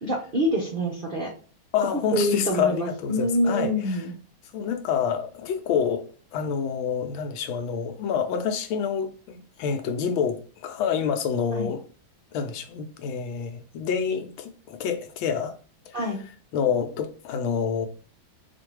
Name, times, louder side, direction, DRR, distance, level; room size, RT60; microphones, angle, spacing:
voice 1, 0.0-1.3 2.1-4.1 11.5-11.7 15.9-16.2, equal, 90° right, 0.4 m, -26 dB
voice 2, 1.7-4.0 4.5-6.1 6.3-11.8 12.3-15.5 15.9-16.1 16.5-17.9, left 7 dB, 85° left, 1.5 m, -27 dB
4.5 x 2.5 x 4.6 m
omnidirectional pair, 2.2 m